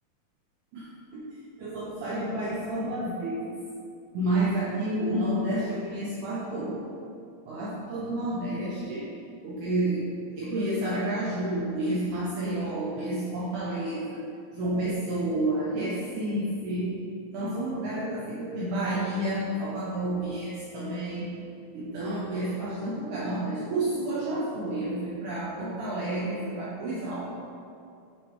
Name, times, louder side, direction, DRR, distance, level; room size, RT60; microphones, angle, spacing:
voice 1, 0.7-1.2 1.6-3.6 4.1-6.8 7.5-9.1 9.4-10.0 10.4-14.3 14.5-17.0 17.3-21.3 21.7-27.3, right 1 dB, 80° right, -7 dB, 1.8 m, -30 dB
8.8 x 3.5 x 4.6 m, 2.5 s
omnidirectional pair, 4.6 m